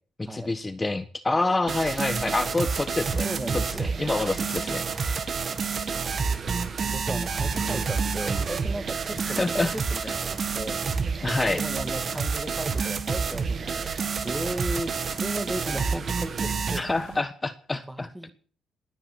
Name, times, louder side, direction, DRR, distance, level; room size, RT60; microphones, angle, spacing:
voice 1, 0.2-3.3 3.5-4.9 9.3-9.7 11.2-11.6 16.8-18.1, left 2 dB, 20° left, 11 dB, 1.3 m, -27 dB
sound 1, 1.7-16.8, right 5 dB, 45° right, 2.0 m, -29 dB
sound 2, 3.0-17.2, right 6 dB, 80° right, 2.6 m, -47 dB
voice 2, 3.2-3.9 6.8-10.8 11.4-16.8 17.9-18.3, right 1 dB, 10° right, 10 dB, 1.8 m, -36 dB
sound 3, 4.4-9.9, right 3 dB, 30° right, 5.5 m, -52 dB
20.0 x 9.9 x 6.2 m, 0.43 s
cardioid pair, 90°, 0 cm